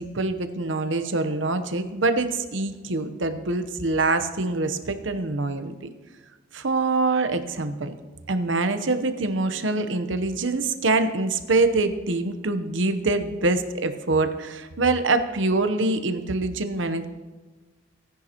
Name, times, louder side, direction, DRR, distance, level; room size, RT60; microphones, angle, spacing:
voice 1, 0.0-5.7 6.5-7.9 8.3-17.1, right 3 dB, 75° right, 9 dB, 0.9 m, -24 dB
18.0 x 10.5 x 3.0 m, 1.3 s
head